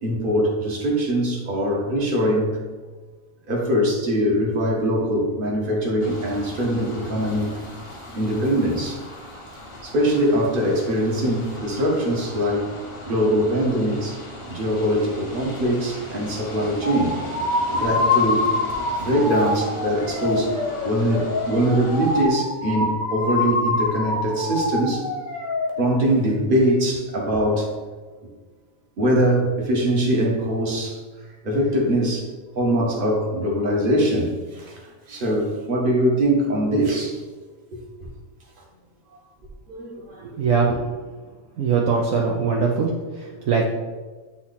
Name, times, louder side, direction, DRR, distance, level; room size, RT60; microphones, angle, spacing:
voice 1, 0.0-2.6 3.5-7.5 8.1-9.0 9.8-12.7 13.0-14.2 14.5-17.2 17.7-18.4 19.0-20.6 20.8-25.0 25.8-27.7 29.0-31.0 31.4-32.2 32.5-34.8 35.1-37.2 37.7-38.1 39.7-40.2, equal, 40° right, -2 dB, 1.3 m, -22 dB
sound 1, 6.0-22.3, left 1 dB, 25° left, 0.7 m, -38 dB
sound 2, 16.8-25.7, left 2 dB, 65° left, 1.5 m, -25 dB
voice 2, 40.2-40.7 41.6-43.7, right 5 dB, 65° right, -2 dB, 1.0 m, -22 dB
8.5 x 2.9 x 4.0 m, 1.4 s
omnidirectional pair, 1.6 m